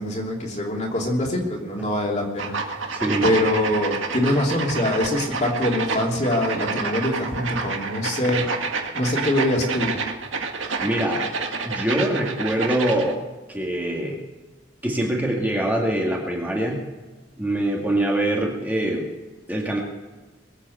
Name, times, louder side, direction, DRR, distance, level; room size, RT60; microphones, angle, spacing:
voice 1, 0.0-8.5 8.9-9.9, left 1 dB, 35° left, -1 dB, 3.0 m, -24 dB
sound 1, 2.4-13.1, right 4 dB, 85° right, 1.8 m, -29 dB
voice 2, 2.9-3.3 10.8-11.3 11.6-13.2 13.5-14.2 14.8-16.8 17.4-19.1 19.5-19.8, right 1 dB, 10° right, -2 dB, 2.2 m, -24 dB
22.0 x 8.3 x 7.9 m, 1.2 s
head